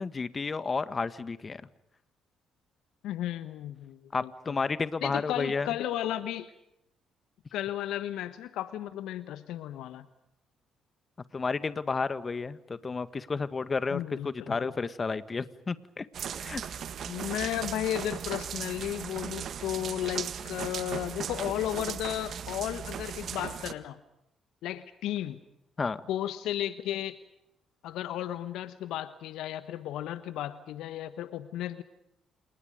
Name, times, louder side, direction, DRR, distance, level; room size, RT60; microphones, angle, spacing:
voice 1, 0.0-1.6 4.1-5.7 11.3-16.1 16.4-16.6 25.8-26.0, left 4 dB, 35° left, 13 dB, 1.7 m, -31 dB
voice 2, 3.0-4.6 5.0-6.5 7.5-10.1 13.9-14.7 17.1-24.0 24.6-25.4 26.1-27.2 27.8-31.8, left 12 dB, 70° left, 13 dB, 1.1 m, -34 dB
sound 1, 16.1-23.7, right 8 dB, 60° right, 1.6 m, -37 dB
30.0 x 29.0 x 5.2 m, 0.81 s
hypercardioid pair, 50°, 0 cm